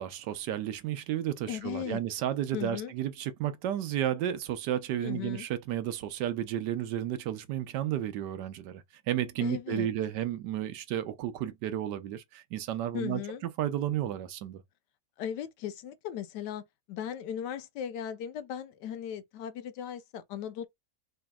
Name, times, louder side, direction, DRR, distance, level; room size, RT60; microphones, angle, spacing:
voice 1, 0.0-13.2 13.6-14.6, right 11 dB, 85° right, 1.3 m, -32 dB
voice 2, 1.5-2.0 2.5-2.9 5.0-5.5 9.4-9.9 12.9-13.4 15.2-20.7, left 9 dB, 85° left, 1.3 m, -37 dB
5.1 x 2.8 x 2.3 m
omnidirectional pair, 1.8 m